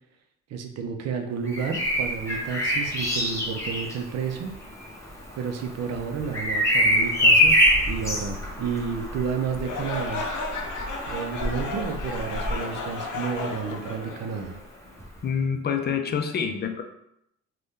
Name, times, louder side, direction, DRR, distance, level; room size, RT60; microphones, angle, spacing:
voice 1, 0.5-4.5 5.4-7.6 7.9-10.3 11.1-14.6, right 6 dB, 60° right, 5 dB, 0.5 m, -31 dB
Bird vocalization bird call bird song, 1.4-13.3 15.0-15.2, equal, 10° left, 0.9 m, -25 dB
sound 1, 9.6-14.8, left 3 dB, 75° left, 0.6 m, -34 dB
voice 2, 15.2-16.8, left 6 dB, 35° left, 6 dB, 0.4 m, -26 dB
2.6 x 2.2 x 3.5 m, 0.77 s
cardioid pair, 90°, 30 cm